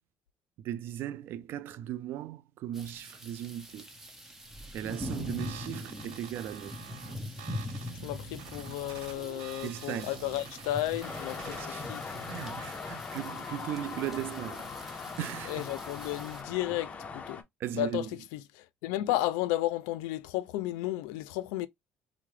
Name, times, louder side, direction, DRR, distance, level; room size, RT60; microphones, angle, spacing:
voice 1, 0.6-3.9 4.7-6.7 9.6-10.1 11.5-15.6 17.6-18.1, right 11 dB, 60° right, 0.4 m, -38 dB
sound 1, 2.7-16.4, left 1 dB, 5° right, 1.0 m, -43 dB
sound 2, 4.9-12.9, right 7 dB, 85° right, 1.0 m, -48 dB
voice 2, 8.0-12.0 15.5-17.4 17.7-21.7, left 15 dB, 90° left, 0.3 m, -33 dB
sound 3, 11.0-17.4, left 5 dB, 30° left, 0.6 m, -40 dB
4.5 x 2.1 x 3.1 m
cardioid pair, 110°, 4 cm